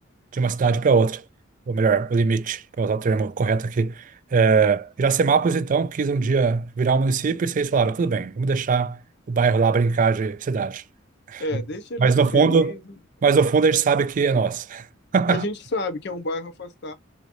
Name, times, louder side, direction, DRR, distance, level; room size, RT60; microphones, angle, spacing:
voice 1, 0.3-1.2 1.7-4.1 4.3-9.0 9.3-10.8 11.3-11.4 12.0-12.7 13.2-14.9 15.1-15.5, right 5 dB, 40° right, 0.4 m, -21 dB
voice 2, 11.4-12.8 15.3-16.9, left 2 dB, 60° left, 0.8 m, -30 dB
3.7 x 3.1 x 2.6 m
head